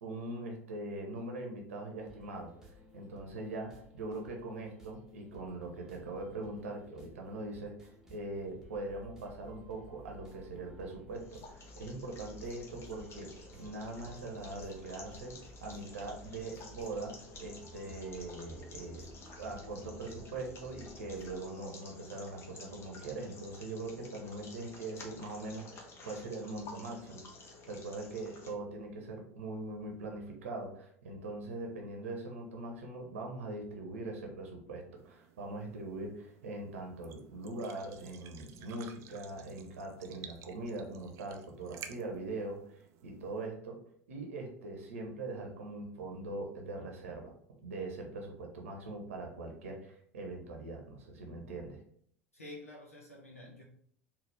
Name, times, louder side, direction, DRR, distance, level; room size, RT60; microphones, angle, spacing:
voice 1, 0.0-13.3 13.6-15.3 15.6-19.1 19.4-43.8 44.1-47.3 47.6-51.8, right 2 dB, 70° right, 0.8 m, -42 dB
sound 1, 2.0-21.4, equal, 5° right, 0.9 m, -54 dB
sound 2, 11.1-28.5, left 3 dB, 35° left, 0.9 m, -52 dB
sound 3, 35.0-43.5, right 9 dB, 40° right, 0.4 m, -54 dB
voice 2, 52.3-53.6, left 2 dB, 85° left, 0.7 m, -49 dB
4.1 x 2.3 x 3.3 m
figure-of-eight pair, 75°, 8 cm